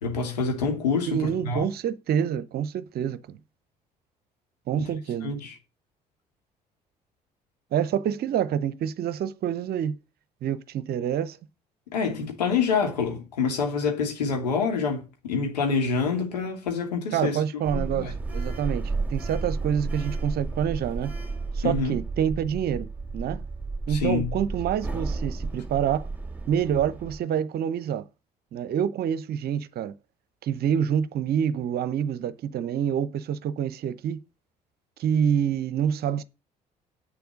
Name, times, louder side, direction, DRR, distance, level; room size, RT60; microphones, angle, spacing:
voice 1, 0.0-1.7 4.8-4.9 5.2-5.6 11.9-17.4 17.7-18.1 21.6-22.0 23.9-24.3, left 5 dB, 75° left, 2.6 m, -27 dB
voice 2, 1.1-3.4 4.7-5.3 7.7-10.0 10.4-11.4 17.1-18.1 18.3-18.8 19.1-21.1 21.6-22.9 23.1-23.4 23.9-26.1 26.5-28.0 28.5-29.9 30.4-34.2 35.0-36.2, right 9 dB, 50° right, 0.8 m, -27 dB
Sliding door, 17.6-27.2, right 3 dB, 5° right, 2.4 m, -32 dB
8.5 x 6.9 x 6.3 m
figure-of-eight pair, 50°, 21 cm